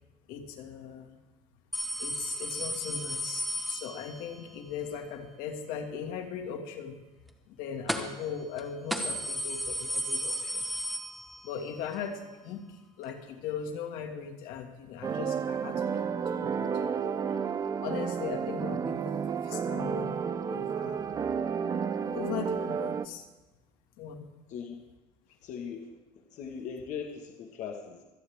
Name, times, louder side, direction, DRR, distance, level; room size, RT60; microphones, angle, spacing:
voice 1, 0.3-1.1 2.0-7.0 7.5-10.7 11.4-17.2 17.8-19.2 19.4-20.2 20.5-21.0 22.1-23.2 24.0-24.3, left 7 dB, 70° left, 3 dB, 2.0 m, -39 dB
sound 1, 1.7-4.4 7.9-8.3 8.6-8.7 8.9-11.6 12.0-12.1 13.1-13.2, equal, ahead, 1.1 m, -34 dB
sound 2, 15.0-23.1, right 7 dB, 25° right, 0.5 m, -31 dB
voice 2, 25.4-28.0, left 6 dB, 50° left, 2 dB, 1.5 m, -40 dB
25.5 x 9.6 x 3.5 m, 1.1 s
cardioid pair, 145°, 15 cm